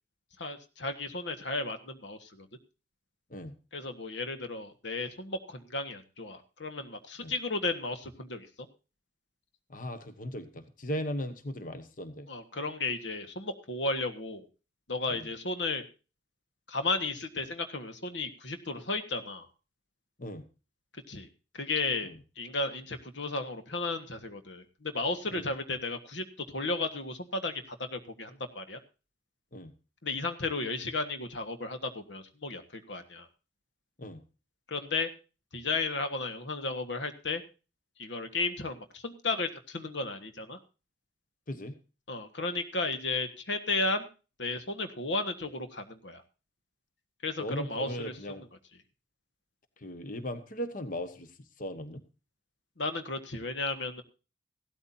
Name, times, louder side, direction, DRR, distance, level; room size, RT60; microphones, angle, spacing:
voice 1, 0.4-2.5 3.7-8.5 12.3-14.5 14.9-15.8 16.7-19.5 21.1-21.3 21.5-22.1 22.4-26.2 26.5-28.8 30.0-33.3 34.7-35.1 35.5-37.4 38.0-40.6 42.1-44.1 44.4-46.2 47.2-48.1 52.8-54.0, left 3 dB, 85° left, 8 dB, 1.5 m, -34 dB
voice 2, 9.7-12.3 15.1-15.3 20.2-20.4 22.0-22.2 25.3-25.5 29.5-29.7 34.0-34.2 41.5-41.8 47.4-48.4 49.8-52.0, equal, 50° left, 9 dB, 1.3 m, -38 dB
16.0 x 12.5 x 2.7 m, 0.33 s
head